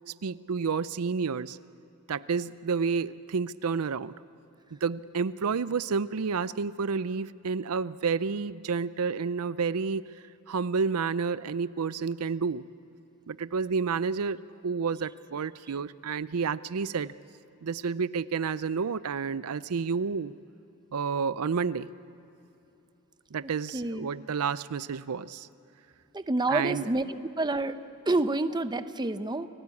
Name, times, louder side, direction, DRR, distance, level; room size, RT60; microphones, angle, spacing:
voice 1, 0.2-1.6 2.1-4.1 4.7-10.0 10.5-12.6 13.3-14.4 14.6-17.1 17.6-20.3 20.9-21.9 23.3-25.5 26.5-26.8, right 5 dB, 75° right, 16 dB, 0.5 m, -30 dB
voice 2, 23.4-24.1 26.1-27.0 27.4-27.8 28.1-29.5, right 2 dB, 20° right, 10 dB, 0.8 m, -28 dB
30.0 x 18.0 x 8.4 m, 2.9 s
head